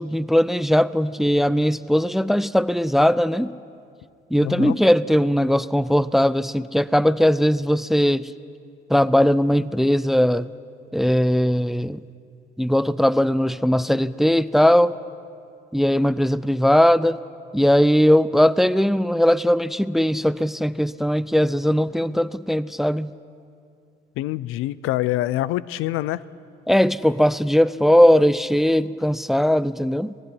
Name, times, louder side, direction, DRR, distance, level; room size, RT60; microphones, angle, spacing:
voice 1, 0.0-3.5 4.3-8.3 8.9-10.5 10.9-12.0 12.6-15.0 15.7-17.2 17.5-23.1 26.7-30.1, equal, ahead, 19 dB, 0.5 m, -19 dB
voice 2, 4.4-4.8 24.2-26.2, left 15 dB, 80° left, 20 dB, 0.6 m, -25 dB
19.0 x 16.0 x 9.9 m, 2.4 s
supercardioid pair, 80°, 21 cm